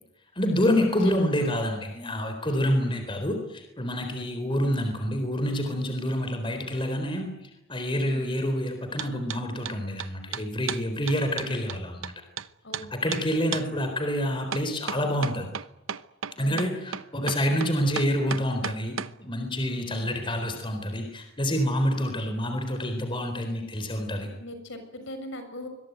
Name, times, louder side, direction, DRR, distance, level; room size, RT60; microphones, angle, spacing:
voice 1, 0.4-7.3 7.7-12.1 12.9-15.5 16.4-24.3, equal, 25° left, 6 dB, 4.0 m, -27 dB
voice 2, 2.6-3.0 8.0-8.5 11.2-11.3 11.7-12.0 12.6-13.6 16.4-17.0 19.7-20.2 22.2-22.4 24.4-25.7, left 1 dB, 65° left, 8 dB, 6.9 m, -42 dB
sound 1, 9.0-9.4 9.7-12.5 12.7-12.9 13.1-13.2 13.5-13.7 14.5-19.1, right 7 dB, 80° right, 1.0 m, -33 dB
26.0 x 22.5 x 9.3 m, 0.90 s
head